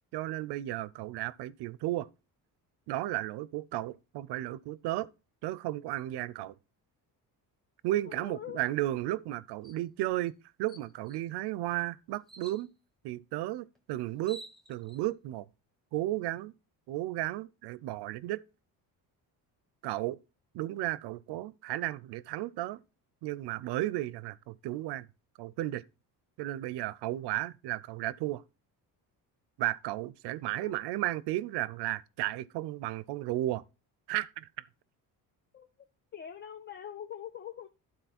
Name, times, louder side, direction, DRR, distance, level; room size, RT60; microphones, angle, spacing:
voice 1, 0.1-2.1 2.9-5.1 5.4-6.5 7.8-12.7 13.0-14.4 14.7-15.5 15.9-16.5 16.9-18.4 19.8-20.2 20.5-22.8 23.2-25.1 25.4-25.8 26.4-28.4 29.6-33.6 34.1-34.5, right 16 dB, 85° right, 0.6 m, -34 dB
voice 2, 8.1-8.7 30.6-30.8 35.5-35.7 36.1-37.7, left 10 dB, 30° left, 0.4 m, -43 dB
sound 1, 9.6-9.8 10.3-10.4 10.7-11.3 12.3-12.7 13.8-13.9 14.1-15.0, right 2 dB, ahead, 1.0 m, -50 dB
11.5 x 4.1 x 4.2 m
cardioid pair, 140°, 39 cm